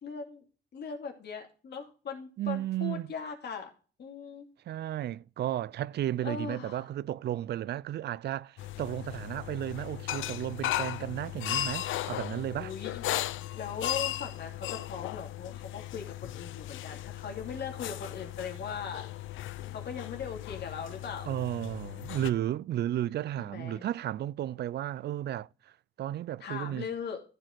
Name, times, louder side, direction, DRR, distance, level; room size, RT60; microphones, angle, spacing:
voice 1, 0.0-0.4 0.7-3.7 4.0-4.5 6.2-6.9 12.6-13.1 13.5-19.1 19.7-21.3 23.4-23.8 26.4-27.2, left 6 dB, 55° left, 2.7 m, -39 dB
voice 2, 2.4-3.1 4.7-12.7 21.3-25.5 26.0-26.9, right 12 dB, 55° right, 0.4 m, -33 dB
sound 1, 8.6-22.3, left 13 dB, 80° left, 0.6 m, -37 dB
14.5 x 4.9 x 4.0 m
cardioid pair, 90°, 20 cm